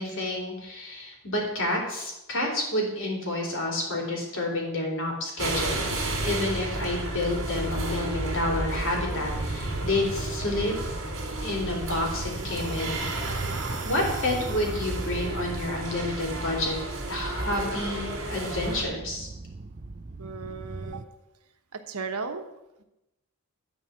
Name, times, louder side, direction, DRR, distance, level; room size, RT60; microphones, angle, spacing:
voice 1, 0.0-10.7 11.4-13.4 13.8-16.8 17.1-19.3, left 1 dB, 60° left, 0 dB, 3.1 m, -29 dB
sound 1, 5.4-18.8, right 2 dB, 60° right, 3.0 m, -32 dB
sound 2, 9.3-21.0, right 3 dB, 35° right, 0.5 m, -39 dB
voice 2, 20.2-21.0 21.7-22.4, right 4 dB, 85° right, 7 dB, 1.1 m, -35 dB
11.5 x 4.8 x 8.0 m, 0.92 s
head